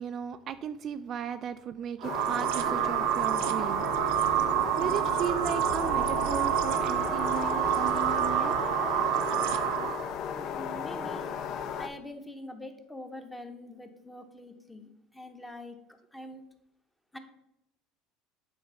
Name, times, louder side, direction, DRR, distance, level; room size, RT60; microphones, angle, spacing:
voice 1, 0.0-4.4 4.8-8.6 11.0-11.2, right 8 dB, 40° right, 9 dB, 0.3 m, -36 dB
sound 1, 2.0-11.9, left 7 dB, 50° left, 0.6 m, -35 dB
sound 2, 2.0-10.1, right 11 dB, 75° right, 0.7 m, -28 dB
voice 2, 10.3-11.3 11.8-15.8 16.1-16.4 17.1-17.2, left 1 dB, 5° left, 6 dB, 0.9 m, -44 dB
8.6 x 3.9 x 5.6 m, 0.83 s
cardioid pair, 135°, 0 cm